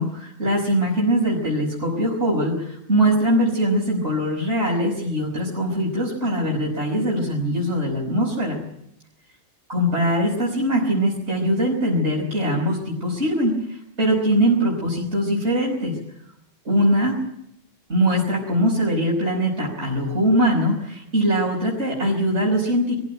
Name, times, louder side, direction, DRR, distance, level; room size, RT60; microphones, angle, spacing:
voice 1, 0.0-8.6 9.7-16.0 16.7-17.2 17.9-22.9, equal, 60° right, -4 dB, 5.6 m, -22 dB
22.5 x 15.5 x 9.3 m, 0.77 s
omnidirectional pair, 1.3 m